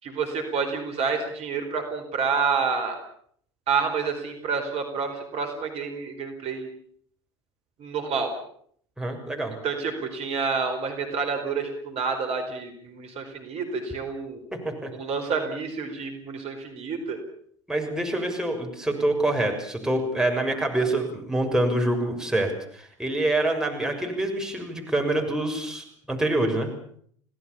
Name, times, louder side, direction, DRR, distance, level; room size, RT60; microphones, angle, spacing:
voice 1, 0.0-3.0 3.7-6.7 7.8-8.3 9.6-14.4 15.0-17.2, right 5 dB, 40° right, 5 dB, 4.7 m, -28 dB
voice 2, 9.0-9.5 14.5-14.9 17.7-26.7, right 1 dB, 5° right, 2 dB, 6.6 m, -26 dB
28.5 x 18.5 x 7.1 m, 0.63 s
figure-of-eight pair, 75°, 15 cm